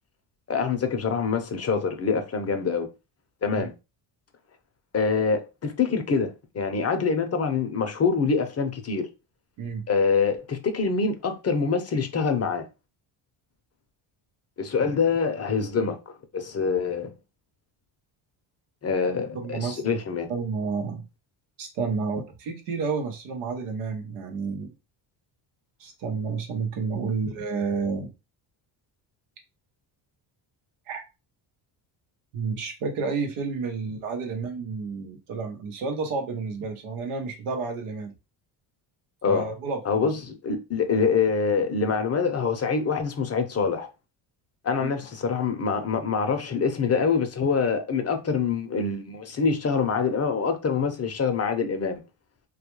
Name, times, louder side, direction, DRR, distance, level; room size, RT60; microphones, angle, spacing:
voice 1, 0.5-2.9 3.4-3.7 4.9-9.1 9.9-12.7 14.6-17.1 18.8-20.3 39.2-39.4 39.9-43.9 44.6-52.0, left 5 dB, 30° left, 0.6 m, -25 dB
voice 2, 19.3-20.0 20.3-21.1 21.6-24.7 25.8-28.1 30.9-31.0 32.3-38.1 39.3-40.1 44.8-44.9, right 4 dB, 90° right, 0.8 m, -30 dB
2.3 x 2.2 x 2.9 m
cardioid pair, 85°, 49 cm